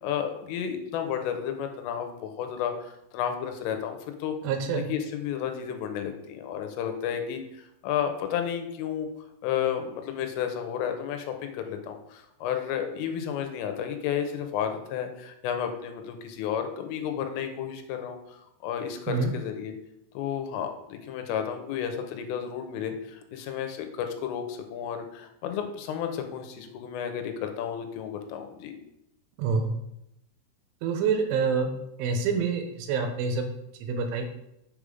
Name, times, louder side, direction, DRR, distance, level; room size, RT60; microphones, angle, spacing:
voice 1, 0.0-4.4 4.7-9.1 9.4-19.7 20.1-28.7, left 8 dB, 90° left, 6 dB, 3.3 m, -32 dB
voice 2, 4.4-4.9 19.1-19.3 29.4-29.7 30.8-31.7 32.0-33.5 33.8-34.3, right 5 dB, 80° right, 5 dB, 3.1 m, -26 dB
6.9 x 5.0 x 5.2 m, 0.82 s
omnidirectional pair, 5.8 m